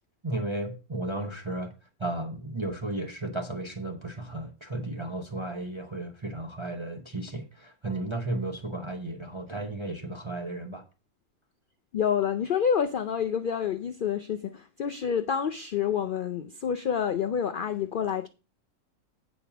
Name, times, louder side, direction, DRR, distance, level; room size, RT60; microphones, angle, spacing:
voice 1, 0.2-1.7 2.0-10.8, right 2 dB, 25° right, 0.7 m, -34 dB
voice 2, 11.9-18.3, left 8 dB, 80° left, 0.4 m, -28 dB
8.5 x 5.2 x 5.8 m
omnidirectional pair, 1.5 m